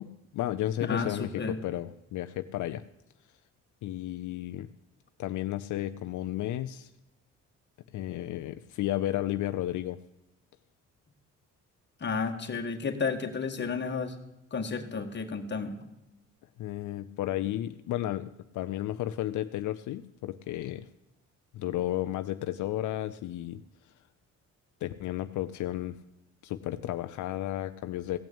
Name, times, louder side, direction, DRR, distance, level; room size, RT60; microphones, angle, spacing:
voice 1, 0.0-2.8 3.8-4.7 5.2-6.9 7.9-10.0 16.6-18.3 18.5-20.9 21.5-23.6 24.8-26.0 26.4-28.2, left 13 dB, 75° left, 10 dB, 0.6 m, -33 dB
voice 2, 0.9-1.6 12.0-14.2 14.5-15.8, left 5 dB, 35° left, 5 dB, 1.7 m, -32 dB
16.0 x 6.1 x 8.8 m, 0.93 s
cardioid pair, 90°, 30 cm